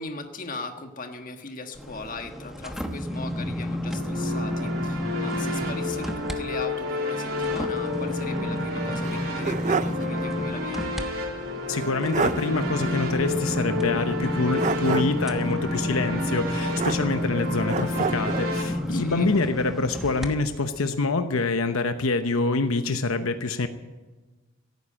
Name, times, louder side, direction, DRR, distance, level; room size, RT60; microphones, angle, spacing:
voice 1, 0.0-10.8 18.9-19.3, left 3 dB, 40° left, 5 dB, 1.5 m, -38 dB
sound 1, 1.7-6.4 6.8-20.3 20.8-20.9, left 1 dB, ahead, 1.0 m, -31 dB
sound 2, 3.9-18.6, left 2 dB, 75° right, 3.1 m, -31 dB
sound 3, 9.0-10.1 10.4-10.5 11.8-11.9 12.1-12.5 14.6-15.3 16.7-17.4 17.7-18.5, right 5 dB, 35° right, 0.4 m, -28 dB
voice 2, 11.7-23.7, left 3 dB, 85° left, 8 dB, 0.9 m, -26 dB
17.0 x 9.5 x 8.7 m, 1.2 s
head